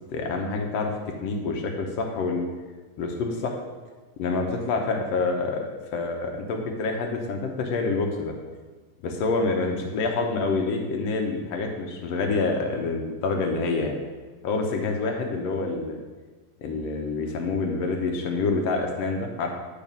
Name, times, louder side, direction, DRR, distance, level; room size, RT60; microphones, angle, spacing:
voice 1, 0.1-0.9 1.2-2.4 3.0-3.5 4.2-5.6 5.9-8.3 9.0-14.0 14.4-16.0 16.6-19.5, left 3 dB, 70° left, 2 dB, 1.7 m, -27 dB
9.0 x 4.9 x 5.4 m, 1.3 s
omnidirectional pair, 3.6 m